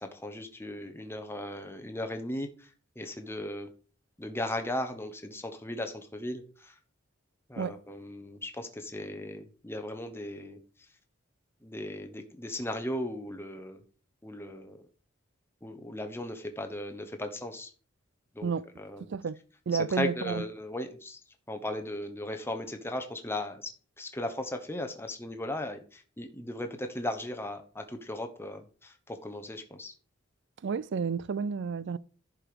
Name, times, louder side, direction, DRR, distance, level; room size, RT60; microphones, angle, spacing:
voice 1, 0.0-2.7 3.0-3.7 4.2-6.8 7.5-10.6 11.6-13.8 14.2-14.8 15.6-17.7 18.3-18.5 18.8-19.1 20.0-21.2 21.5-23.7 24.0-29.9, left 1 dB, 10° left, 1.0 m, -37 dB
voice 2, 19.0-19.4 19.7-20.4 30.6-32.0, right 5 dB, 55° right, 0.4 m, -31 dB
11.0 x 4.9 x 5.1 m
head